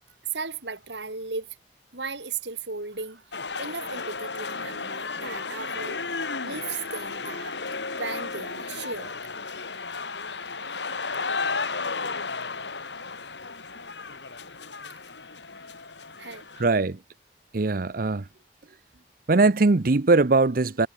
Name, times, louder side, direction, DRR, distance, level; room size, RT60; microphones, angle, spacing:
voice 1, 0.3-1.6 1.9-6.0 6.4-7.6 7.9-9.1 10.0-10.2 13.8-14.0 16.2-16.5, right 4 dB, 85° right, 4.9 m, -36 dB
sound 1, 3.3-16.6, left 4 dB, 90° left, 4.3 m, -34 dB
voice 2, 16.6-17.0 17.5-18.3 19.3-20.9, right 3 dB, 55° right, 0.7 m, -21 dB
head